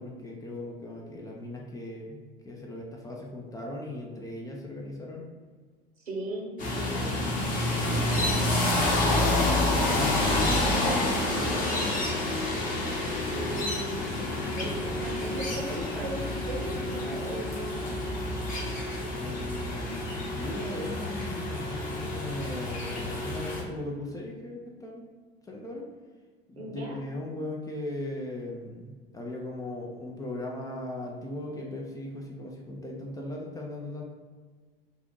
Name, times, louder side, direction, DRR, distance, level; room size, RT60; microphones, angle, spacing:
voice 1, 0.0-5.2 7.7-10.4 19.1-25.1 25.4-25.9 26.5-34.0, left 1 dB, 10° left, -1 dB, 0.3 m, -38 dB
voice 2, 6.1-7.3 11.1-11.7 13.2-18.0 26.6-26.9, right 1 dB, 85° right, -2 dB, 0.8 m, -38 dB
sound 1, 6.6-23.6, left 2 dB, 25° left, 0.9 m, -28 dB
2.5 x 2.4 x 3.7 m, 1.5 s
figure-of-eight pair, 80°, 30 cm